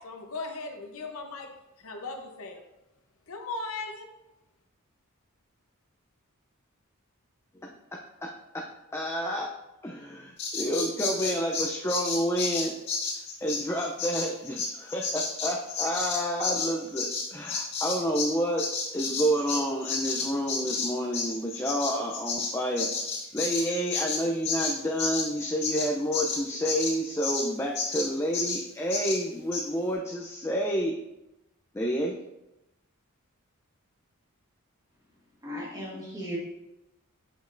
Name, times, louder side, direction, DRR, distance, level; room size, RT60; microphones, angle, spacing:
voice 1, 0.0-1.5 1.8-2.6 3.3-4.1, left 3 dB, 70° left, 3 dB, 0.8 m, -37 dB
voice 2, 8.2-8.6 8.9-9.5 9.8-12.7 13.4-18.6 18.9-22.9 23.3-30.9 31.7-32.2, equal, 10° left, 0 dB, 0.4 m, -29 dB
Bird vocalization bird call bird song, 10.4-18.3 18.6-27.5 27.7-28.1 28.3-28.6 28.9-29.2 29.5-29.6, left 4 dB, 50° left, 1.9 m, -31 dB
voice 3, 35.4-36.4, equal, 15° right, -5 dB, 1.6 m, -36 dB
7.1 x 5.2 x 2.5 m, 0.93 s
head